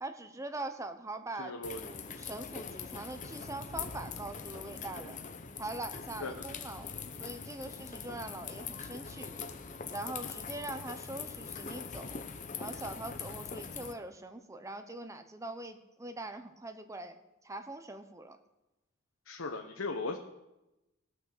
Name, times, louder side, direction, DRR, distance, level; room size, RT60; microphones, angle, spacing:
voice 1, 0.0-1.5 1.8-5.2 5.6-6.9 7.2-9.3 9.9-12.2 12.6-17.2 17.4-18.4, right 2 dB, 15° right, 8 dB, 0.9 m, -42 dB
voice 2, 1.4-1.8 6.2-6.3 19.3-20.2, left 3 dB, 80° left, 3 dB, 1.0 m, -37 dB
sound 1, 1.6-13.9, left 5 dB, 40° left, 0.8 m, -42 dB
18.5 x 6.3 x 6.7 m, 0.97 s
head